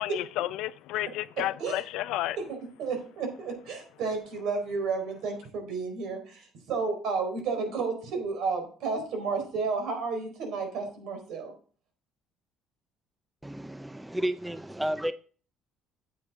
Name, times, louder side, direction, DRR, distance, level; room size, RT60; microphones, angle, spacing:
voice 1, 0.0-2.4, left 15 dB, 80° left, 0.4 m, -31 dB
voice 2, 2.4-11.5, right 4 dB, 70° right, 4.2 m, -32 dB
voice 3, 13.4-15.1, equal, 5° right, 0.4 m, -32 dB
9.8 x 7.9 x 3.6 m
cardioid pair, 110°, 0 cm